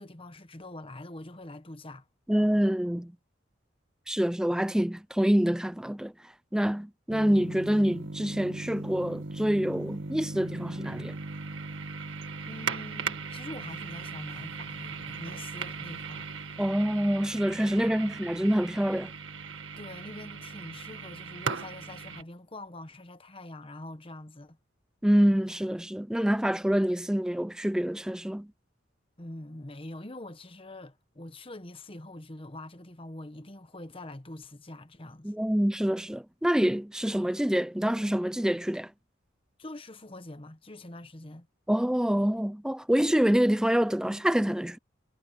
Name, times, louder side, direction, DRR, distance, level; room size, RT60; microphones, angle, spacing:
voice 1, 0.0-2.1 12.5-16.3 17.8-18.2 19.7-24.6 29.2-35.3 39.6-41.5, left 1 dB, 30° left, 1.2 m, -44 dB
voice 2, 2.3-3.1 4.1-6.1 6.5-11.1 16.6-19.1 25.0-28.5 35.2-38.9 41.7-44.8, equal, 5° right, 0.4 m, -26 dB
sound 1, 7.1-22.2, right 4 dB, 80° right, 1.9 m, -38 dB
head